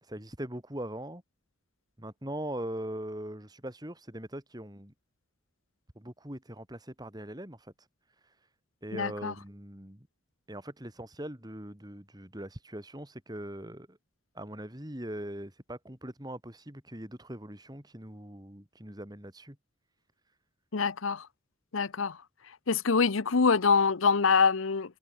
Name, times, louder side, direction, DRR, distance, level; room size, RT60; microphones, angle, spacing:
voice 1, 0.0-1.2 2.0-4.9 6.0-7.7 8.2-8.4 8.8-10.1 10.5-14.0 14.3-19.6, right 1 dB, 20° right, 2.8 m, -41 dB
voice 2, 8.9-9.3 20.7-21.3 21.7-22.2 22.7-25.0, left 5 dB, 80° left, 0.8 m, -25 dB
head